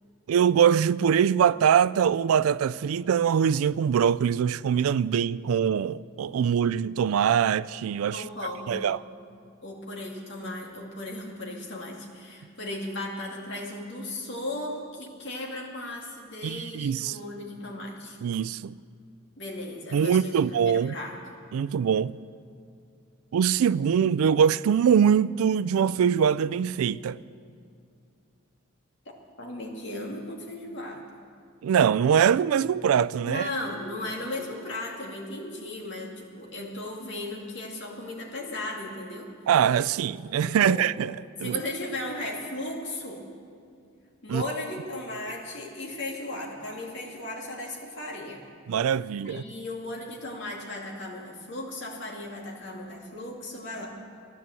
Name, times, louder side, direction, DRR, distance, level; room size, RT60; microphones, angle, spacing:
voice 1, 0.3-8.2 8.7-9.0 16.4-17.2 18.2-18.7 19.9-20.9 21.5-22.2 23.3-27.2 31.6-33.5 39.5-41.1 41.4-41.6 44.3-44.4 48.7-49.4, right 8 dB, 90° right, 0.3 m, -23 dB
voice 2, 8.1-9.0 9.6-18.2 19.4-20.4 20.7-21.2 29.1-31.0 33.2-39.3 40.4-40.8 41.4-43.2 44.2-48.4 49.2-53.9, left 1 dB, 55° left, 2.3 m, -36 dB
14.0 x 11.0 x 7.6 m
head